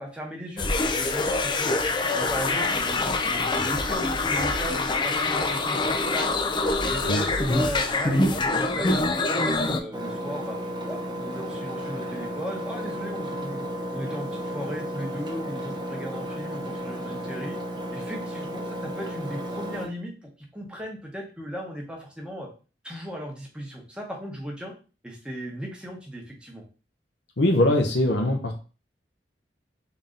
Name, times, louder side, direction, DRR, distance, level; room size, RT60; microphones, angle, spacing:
voice 1, 0.0-1.8 2.1-6.3 6.8-10.6 10.9-13.6 13.9-17.6 17.9-22.5 22.8-24.7 25.0-26.6, equal, 5° right, -1 dB, 1.0 m, -36 dB
sound 1, 0.6-9.8, left 2 dB, 25° left, 0.4 m, -25 dB
Engine, 9.9-19.9, equal, 25° right, 0.6 m, -33 dB
voice 2, 27.4-28.6, left 1 dB, 70° left, 4 dB, 0.7 m, -22 dB
3.8 x 2.7 x 3.7 m, 0.35 s
head